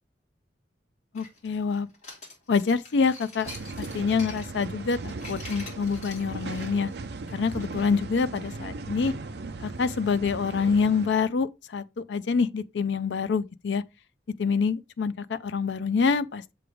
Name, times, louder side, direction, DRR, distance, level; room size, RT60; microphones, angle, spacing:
voice 1, 1.1-1.9 2.5-3.5 3.8-6.9 7.3-9.1 9.6-13.8 14.4-16.5, left 5 dB, 80° left, 0.4 m, -26 dB
sound 1, 1.1-7.8, left 3 dB, 40° left, 2.4 m, -45 dB
sound 2, 3.4-11.1, right 3 dB, 65° right, 0.6 m, -37 dB
7.0 x 3.1 x 4.9 m
head